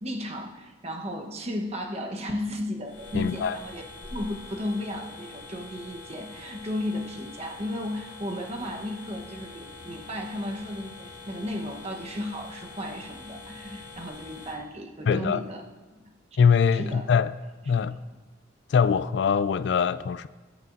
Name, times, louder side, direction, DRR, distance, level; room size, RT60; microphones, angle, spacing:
voice 1, 0.0-15.6 15.9-16.1 16.7-17.1, left 1 dB, 35° right, 1.1 m, -34 dB
sound 1, 2.8-14.6, left 3 dB, 80° left, 1.3 m, -44 dB
voice 2, 3.1-3.6 15.1-15.4 16.4-17.3 17.6-18.0 18.7-20.3, left 6 dB, 60° left, 0.3 m, -22 dB
22.0 x 8.2 x 2.6 m
head